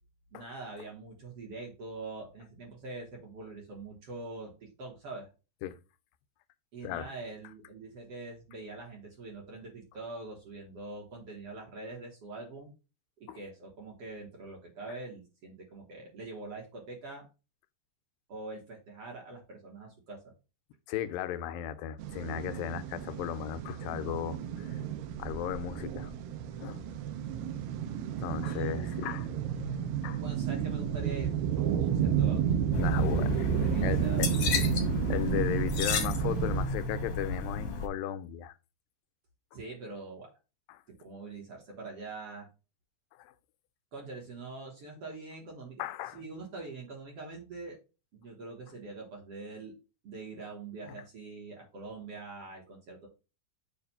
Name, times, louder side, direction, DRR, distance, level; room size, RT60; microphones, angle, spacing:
voice 1, 0.3-5.3 6.7-12.7 13.2-17.3 18.3-20.3 28.4-29.0 30.2-34.2 39.5-40.3 40.9-42.5 43.9-45.8 46.1-47.8 48.1-49.7 50.0-53.1, right 3 dB, 55° right, 1.7 m, -44 dB
voice 2, 20.9-24.7 25.2-26.1 26.6-26.8 28.2-29.3 29.6-30.2 32.8-33.5 33.8-34.3 35.1-38.5 40.7-40.8 43.2-43.3 45.8-46.2 50.9-51.0, left 11 dB, 90° left, 2.3 m, -36 dB
sound 1, 22.0-36.7, right 8 dB, 85° right, 2.3 m, -32 dB
sound 2, 32.7-37.9, left 2 dB, 70° left, 1.4 m, -32 dB
7.1 x 2.5 x 5.4 m
omnidirectional pair, 3.9 m